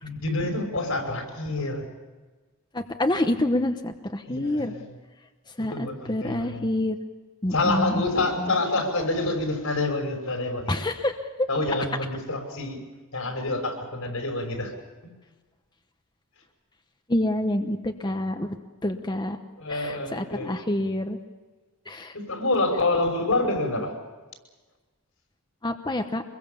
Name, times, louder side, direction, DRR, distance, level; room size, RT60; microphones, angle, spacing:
voice 1, 0.0-1.9 4.3-4.9 5.7-6.7 7.5-10.7 11.5-12.8 13.1-14.7 19.6-20.5 22.1-23.9, left 2 dB, 85° left, 3 dB, 5.8 m, -27 dB
voice 2, 2.7-4.7 5.6-7.0 7.4-8.0 8.4-8.5 10.7-11.5 17.1-18.5 18.8-19.4 19.7-21.2 21.9-22.1 25.6-26.2, left 1 dB, 20° left, 5 dB, 1.0 m, -27 dB
25.5 x 21.5 x 7.0 m, 1.3 s
head